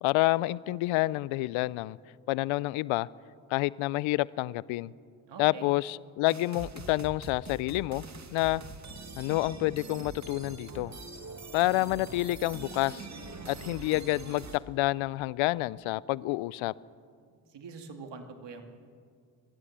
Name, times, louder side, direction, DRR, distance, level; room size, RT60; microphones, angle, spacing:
voice 1, 0.0-2.0 2.3-3.1 3.5-4.9 5.4-8.0 8.3-8.6 9.2-10.9 11.5-13.1 13.5-16.7, left 19 dB, 80° left, 22 dB, 0.6 m, -28 dB
voice 2, 5.3-5.7 17.3-18.6, right 5 dB, 60° right, 5 dB, 2.6 m, -45 dB
sound 1, 6.3-14.6, right 3 dB, 35° right, 2.2 m, -44 dB
22.0 x 16.0 x 7.4 m, 2.2 s
supercardioid pair, 55°, 47 cm